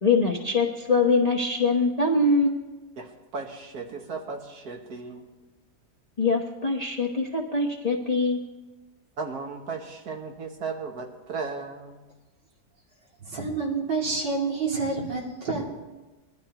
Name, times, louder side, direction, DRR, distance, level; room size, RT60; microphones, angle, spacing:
voice 1, 0.0-2.6 6.2-8.4, left 3 dB, 30° left, 0 dB, 0.8 m, -23 dB
voice 2, 3.0-5.3 9.2-12.0, right 4 dB, 60° right, 3 dB, 1.8 m, -36 dB
voice 3, 13.3-15.6, right 4 dB, 85° right, -3 dB, 3.2 m, -28 dB
21.5 x 12.0 x 2.9 m, 1.1 s
omnidirectional pair, 1.8 m